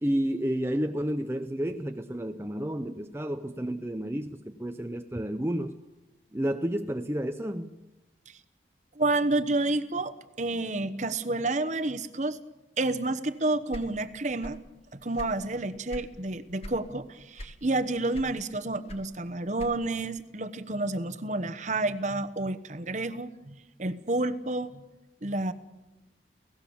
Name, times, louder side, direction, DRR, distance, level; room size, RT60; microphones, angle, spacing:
voice 1, 0.0-5.8 6.3-7.8, equal, 15° right, 0.7 m, -31 dB
voice 2, 8.9-12.4 12.8-14.6 14.9-24.8 25.2-25.5, right 2 dB, 40° right, 1.1 m, -30 dB
sound 1, 13.7-14.7 15.0-16.1 16.6-16.9 17.3-17.8 18.1-20.0, equal, 35° left, 2.0 m, -42 dB
30.0 x 17.0 x 7.2 m
head